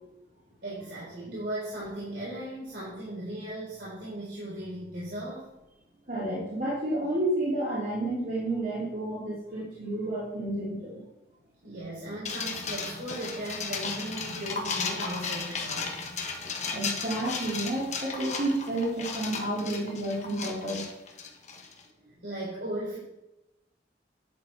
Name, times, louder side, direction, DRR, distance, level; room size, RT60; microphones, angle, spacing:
voice 1, 0.6-5.5 11.6-15.9 22.2-23.0, right 1 dB, 65° right, -8 dB, 3.8 m, -37 dB
voice 2, 6.1-11.0 16.7-20.8, right 1 dB, 50° right, -8 dB, 3.2 m, -30 dB
sound 1, 12.2-21.8, left 4 dB, 40° left, 1.3 m, -35 dB
10.5 x 7.2 x 4.6 m, 0.93 s
head